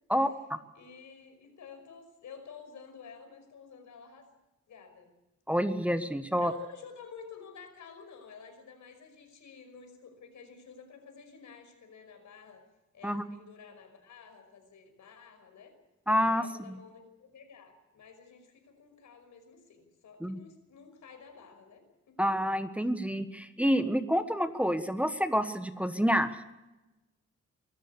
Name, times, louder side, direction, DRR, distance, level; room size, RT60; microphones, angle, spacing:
voice 1, 0.7-4.3 4.7-5.1 6.4-12.6 12.9-15.7 16.2-22.2, left 6 dB, 75° left, 7 dB, 5.5 m, -51 dB
voice 2, 5.5-6.5 13.0-13.2 16.1-16.7 20.2-20.4 22.2-26.4, equal, 5° right, 9 dB, 1.3 m, -28 dB
24.5 x 14.0 x 8.2 m, 1.0 s
cardioid pair, 100°, 29 cm